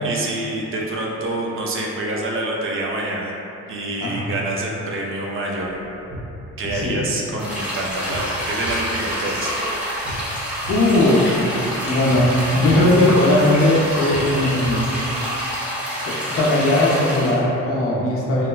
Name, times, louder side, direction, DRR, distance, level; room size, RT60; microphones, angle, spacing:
voice 1, 0.0-3.3 3.7-5.8 6.6-9.5, right 2 dB, 45° right, -2 dB, 0.5 m, -27 dB
voice 2, 4.0-4.3 6.7-7.0 10.7-11.3 11.8-14.8 16.1-18.5, left 1 dB, 50° left, -4 dB, 0.5 m, -18 dB
sound 1, 5.7-15.5, equal, 80° right, 0.8 m, -37 dB
sound 2, 7.4-17.4, equal, 5° right, 0.7 m, -27 dB
3.0 x 2.1 x 2.3 m, 2.8 s
cardioid pair, 90°, 30 cm